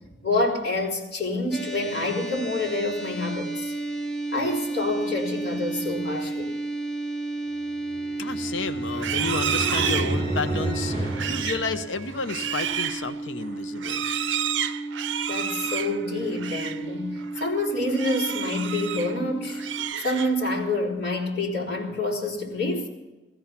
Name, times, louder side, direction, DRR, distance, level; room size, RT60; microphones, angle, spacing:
voice 1, 0.2-3.7 4.3-6.6 15.3-19.6 20.0-22.9, left 2 dB, 55° left, 4.1 m, -27 dB
sound 1, 1.5-19.9, right 2 dB, 5° left, 0.7 m, -33 dB
sound 2, 7.8-12.3, right 1 dB, 30° right, 5.7 m, -31 dB
voice 2, 8.2-14.0, left 4 dB, 85° left, 0.8 m, -31 dB
Livestock farm animals working animals, 8.9-16.9 17.2-17.5 17.9-19.2 19.5-20.6, right 9 dB, 80° right, 0.6 m, -31 dB
16.5 x 15.0 x 5.9 m
head